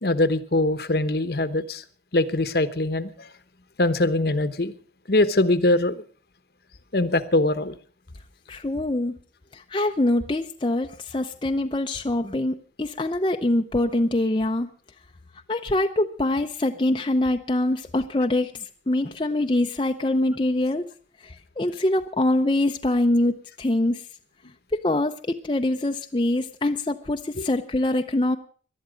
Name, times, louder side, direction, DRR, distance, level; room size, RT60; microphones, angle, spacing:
voice 1, 0.0-1.8 2.1-3.3 3.8-4.7 5.1-6.0 6.9-7.8 27.4-27.5, left 2 dB, 60° left, 13 dB, 1.0 m, -22 dB
voice 2, 8.5-9.2 9.5-14.7 15.5-20.8 21.2-24.0 24.7-28.4, left 1 dB, 25° left, 5 dB, 0.6 m, -24 dB
19.0 x 12.0 x 5.0 m, 0.42 s
head